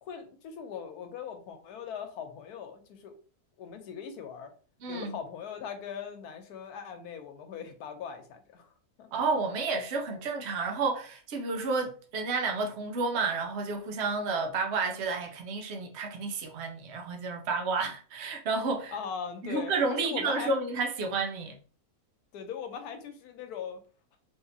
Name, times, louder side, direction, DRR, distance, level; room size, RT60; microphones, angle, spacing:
voice 1, 0.0-3.1 3.6-4.5 4.9-8.7 9.0-9.1 18.9-20.5 22.3-23.8, left 7 dB, 90° left, 1.2 m, -40 dB
voice 2, 4.8-5.2 9.1-18.9 19.4-21.6, right 4 dB, 55° right, 0.8 m, -31 dB
3.5 x 2.8 x 2.7 m
omnidirectional pair, 1.6 m